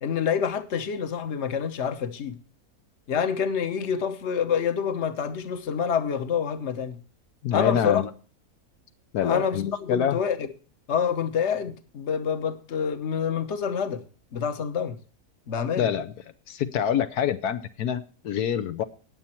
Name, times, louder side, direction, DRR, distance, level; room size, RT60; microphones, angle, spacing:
voice 1, 0.0-2.4 3.1-7.0 7.5-8.0 9.2-10.5 10.9-14.0 14.3-15.0 15.5-15.9, left 7 dB, 50° left, 1.3 m, -27 dB
voice 2, 7.4-8.1 9.1-10.2 15.8-16.1 16.5-18.8, left 9 dB, 80° left, 1.3 m, -26 dB
18.5 x 7.1 x 4.4 m
omnidirectional pair, 1.6 m